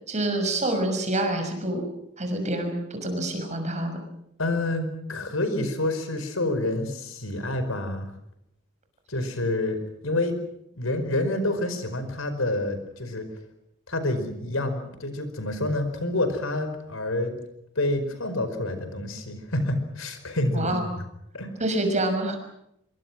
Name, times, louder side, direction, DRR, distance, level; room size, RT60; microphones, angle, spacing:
voice 1, 0.1-1.8 2.2-4.0 20.5-20.9 21.6-22.4, right 1 dB, 35° right, 5 dB, 6.1 m, -27 dB
voice 2, 4.4-8.1 9.1-10.3 10.8-13.2 13.9-17.4 17.7-21.1 21.3-21.5, left 1 dB, 85° left, 9 dB, 5.0 m, -28 dB
26.5 x 24.0 x 6.2 m, 0.77 s
head